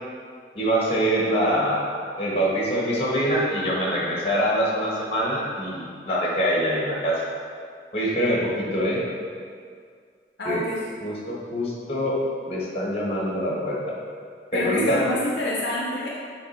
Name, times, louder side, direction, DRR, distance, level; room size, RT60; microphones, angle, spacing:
voice 1, 0.5-1.8 2.2-7.2 7.9-9.0 10.4-10.6 11.0-12.2 12.5-13.8 14.5-15.0, equal, 30° left, -5 dB, 1.4 m, -24 dB
voice 2, 10.4-10.8 14.5-16.1, left 1 dB, 65° left, -4 dB, 0.6 m, -27 dB
7.1 x 3.3 x 4.3 m, 2.1 s
head